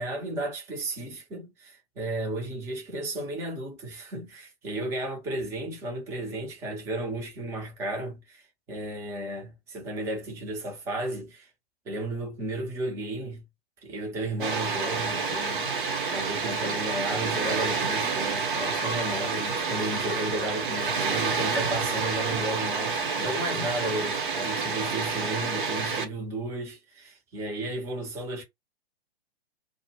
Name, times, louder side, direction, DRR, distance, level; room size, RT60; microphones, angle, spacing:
voice 1, 0.0-11.5 11.9-13.5 13.8-15.8 16.1-28.4, right 1 dB, 10° right, 0.5 m, -34 dB
Water, 14.4-26.1, right 4 dB, 55° right, 0.7 m, -29 dB
2.0 x 2.0 x 3.0 m
figure-of-eight pair, 120°, 32 cm